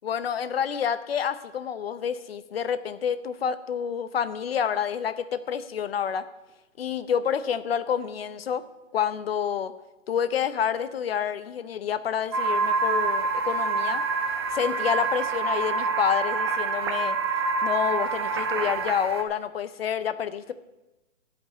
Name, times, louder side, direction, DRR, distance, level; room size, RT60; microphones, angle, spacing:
voice 1, 0.0-6.2 6.8-8.7 8.9-9.7 10.1-14.0 14.5-17.2 17.6-20.5, left 8 dB, 50° left, 13 dB, 0.8 m, -28 dB
sound 1, 12.3-19.2, right 3 dB, 20° right, 0.5 m, -26 dB
13.0 x 5.4 x 9.1 m, 1.1 s
hypercardioid pair, 155°, 38 cm